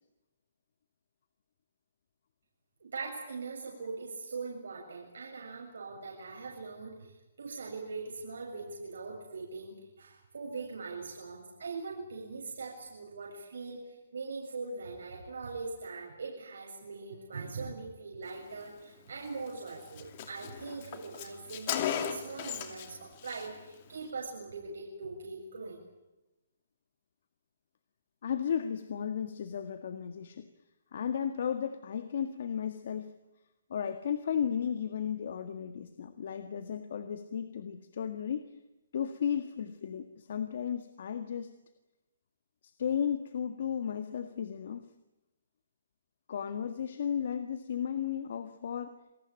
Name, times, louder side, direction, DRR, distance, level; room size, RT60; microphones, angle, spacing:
voice 1, 2.8-25.8, right 4 dB, 80° right, -2 dB, 7.4 m, -41 dB
Car, 19.3-19.4 19.7-19.8 20.0-22.9 23.2-23.5, left 10 dB, 35° left, 2.6 m, -36 dB
voice 2, 28.2-30.5 30.9-33.1 33.7-38.5 38.9-41.5 42.6-44.9 46.3-48.9, left 8 dB, 55° left, 9 dB, 1.8 m, -34 dB
28.0 x 19.0 x 9.0 m, 1.0 s
hypercardioid pair, 165°, 0 cm